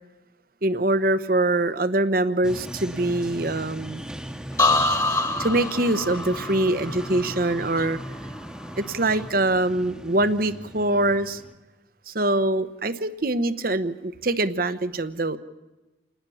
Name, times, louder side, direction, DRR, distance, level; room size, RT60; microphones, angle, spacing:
voice 1, 0.6-4.0 4.7-5.0 5.4-8.0 8.8-11.4 12.1-15.4, right 2 dB, 50° right, 13 dB, 1.0 m, -24 dB
sound 1, 2.4-11.5, equal, 5° right, 1.2 m, -38 dB
sound 2, 4.6-8.4 8.8-9.3, left 2 dB, 20° left, 1.6 m, -26 dB
28.5 x 19.5 x 7.1 m, 1.1 s
head